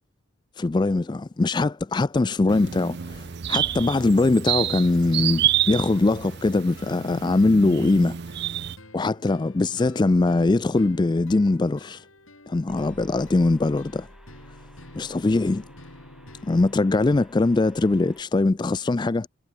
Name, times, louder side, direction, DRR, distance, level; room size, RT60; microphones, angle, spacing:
voice 1, 0.6-8.2 8.9-12.1 12.5-14.1 14.9-15.6 16.4-19.3, left 2 dB, 20° left, 0.3 m, -22 dB
sound 1, 2.5-8.8, right 11 dB, 55° right, 0.5 m, -28 dB
sound 2, 5.8-16.8, left 1 dB, 85° left, 7.0 m, -49 dB
sound 3, 12.7-18.2, equal, 5° right, 1.9 m, -51 dB
head